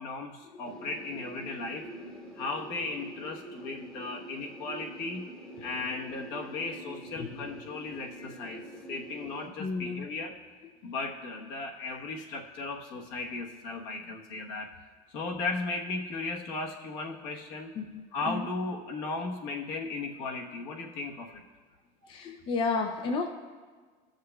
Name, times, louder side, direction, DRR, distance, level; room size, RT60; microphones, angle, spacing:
voice 1, 0.0-1.9 2.3-5.3 5.6-10.3 10.8-14.7 15.1-17.7 18.1-21.3, left 3 dB, 60° left, 0 dB, 1.2 m, -36 dB
sound 1, 0.6-9.5, right 1 dB, 5° left, 0.9 m, -45 dB
voice 2, 7.1-7.5 9.6-10.0 17.8-18.5 22.1-23.3, left 4 dB, 25° left, 4 dB, 0.4 m, -32 dB
18.0 x 6.5 x 2.3 m, 1.5 s
cardioid pair, 170°, 19 cm